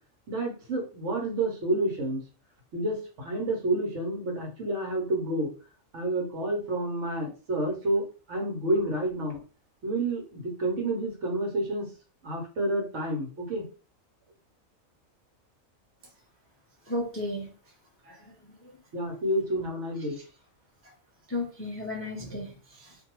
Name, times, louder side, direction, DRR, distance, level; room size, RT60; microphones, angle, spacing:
voice 1, 0.3-2.2 2.7-5.5 5.9-9.4 9.8-11.9 12.2-13.6 18.9-20.2, right 1 dB, 65° right, 1 dB, 1.3 m, -29 dB
voice 2, 16.9-17.5 18.0-18.7 20.8-20.9 21.3-23.0, left 1 dB, 20° left, -1 dB, 0.4 m, -35 dB
2.6 x 2.5 x 2.9 m, 0.34 s
omnidirectional pair, 1.4 m